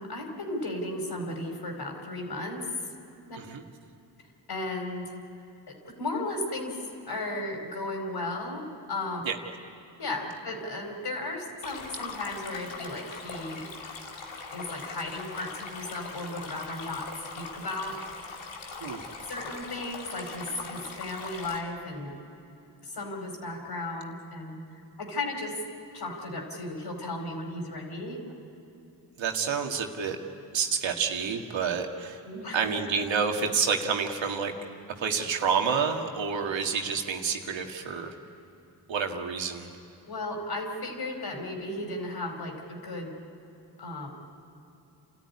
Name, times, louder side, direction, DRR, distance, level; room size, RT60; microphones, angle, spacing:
voice 1, 0.0-2.6 3.3-3.4 4.5-5.1 5.7-6.8 7.1-9.2 10.0-13.6 14.5-17.1 17.3-18.0 19.3-22.2 22.8-24.6 25.0-25.6 25.9-28.2 32.2-32.6 40.1-43.1 43.8-44.1, left 2 dB, 60° left, 2 dB, 4.9 m, -35 dB
Stream, 11.6-21.6, left 4 dB, 80° left, 2.4 m, -41 dB
voice 2, 29.2-30.2 30.5-32.2 32.5-34.5 35.0-38.1 38.9-39.7, right 6 dB, 80° right, 3 dB, 1.9 m, -28 dB
29.0 x 14.0 x 9.8 m, 2.8 s
cardioid pair, 75°, 44 cm